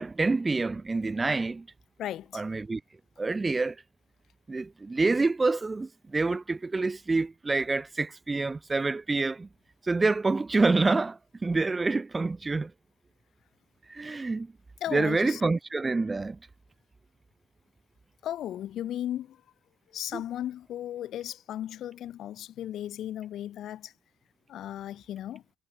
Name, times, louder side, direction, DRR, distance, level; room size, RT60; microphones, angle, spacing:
voice 1, 0.0-1.7 2.3-2.8 3.2-3.8 4.5-9.5 9.8-12.7 13.9-14.5 14.9-16.4 20.1-20.2, right 3 dB, 25° right, 0.4 m, -27 dB
voice 2, 2.0-2.4 14.8-15.4 18.2-19.4 19.9-23.9 24.5-25.4, left 12 dB, 65° left, 3.0 m, -36 dB
hypercardioid pair, 60°, 0 cm